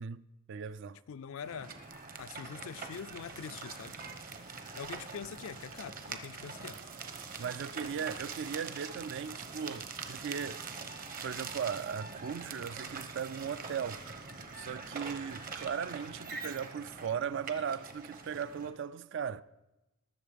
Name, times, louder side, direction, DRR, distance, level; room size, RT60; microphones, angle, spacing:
voice 1, 0.0-1.0 7.4-10.7 11.2-14.0 14.5-19.4, right 7 dB, 55° right, 0.3 m, -38 dB
voice 2, 1.1-1.8 2.2-4.0 4.7-6.8, left 7 dB, 65° left, 0.4 m, -44 dB
sound 1, 1.4-18.7, right 4 dB, 40° right, 0.9 m, -44 dB
sound 2, 4.4-10.9, right 7 dB, 75° right, 1.0 m, -59 dB
20.0 x 6.9 x 5.1 m
head